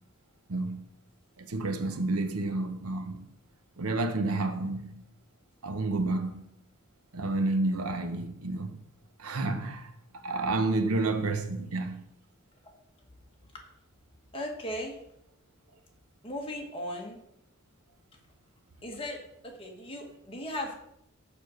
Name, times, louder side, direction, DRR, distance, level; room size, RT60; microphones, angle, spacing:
voice 1, 0.5-0.8 1.4-3.2 3.8-4.9 5.6-6.4 7.1-8.8 9.2-9.9 10.2-12.0, right 2 dB, 85° right, 0.8 m, -30 dB
voice 2, 14.3-14.9 16.2-17.2 18.8-19.2 19.4-20.7, left 1 dB, 25° left, 1.4 m, -37 dB
6.7 x 5.0 x 6.4 m
head